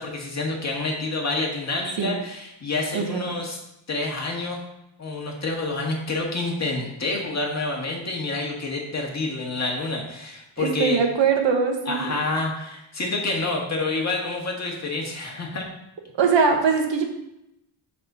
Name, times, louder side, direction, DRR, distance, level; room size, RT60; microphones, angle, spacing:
voice 1, 0.0-3.6 3.9-4.6 5.0-11.0 11.9-15.7, left 3 dB, 35° left, 0 dB, 1.9 m, -28 dB
voice 2, 2.9-3.3 10.6-12.2 16.2-17.0, right 5 dB, 65° right, 3 dB, 1.3 m, -22 dB
7.6 x 4.2 x 6.8 m, 0.85 s
wide cardioid pair, 145°, 48 cm